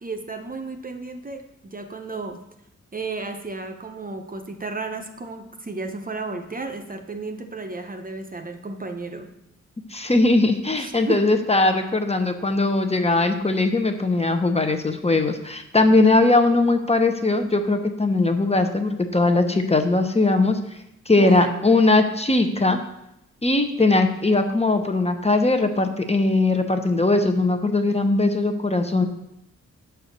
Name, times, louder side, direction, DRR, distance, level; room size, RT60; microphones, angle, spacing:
voice 1, 0.0-2.4 2.9-9.3 10.8-11.3 21.2-21.8, right 3 dB, 30° right, 5 dB, 0.9 m, -33 dB
voice 2, 9.9-20.6 21.1-22.8 23.4-29.1, left 2 dB, 20° left, 6 dB, 0.9 m, -20 dB
8.1 x 4.6 x 6.6 m, 0.82 s
wide cardioid pair, 95°, 30 cm